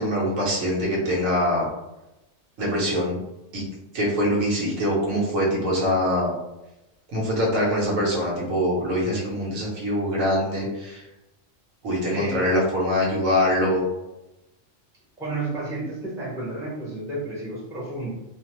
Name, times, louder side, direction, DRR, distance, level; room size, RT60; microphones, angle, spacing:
voice 1, 0.0-1.7 2.6-3.2 3.5-3.6 3.9-6.3 7.1-11.0 11.8-13.8, equal, 75° right, -5 dB, 1.3 m, -23 dB
voice 2, 12.1-12.4 15.2-18.1, right 2 dB, 5° right, -7 dB, 0.6 m, -31 dB
2.8 x 2.0 x 2.9 m, 0.97 s
omnidirectional pair, 1.4 m